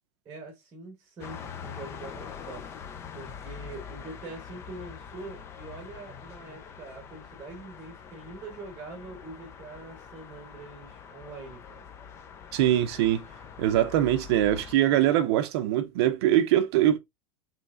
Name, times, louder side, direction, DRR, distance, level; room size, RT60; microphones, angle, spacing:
voice 1, 0.2-2.6 3.1-11.8, right 3 dB, 15° right, 1.1 m, -44 dB
sound 1, 1.2-14.8, left 7 dB, 15° left, 0.3 m, -44 dB
voice 2, 12.5-13.2 13.6-17.0, right 12 dB, 55° right, 0.6 m, -23 dB
5.5 x 3.2 x 2.4 m
supercardioid pair, 175°, 16 cm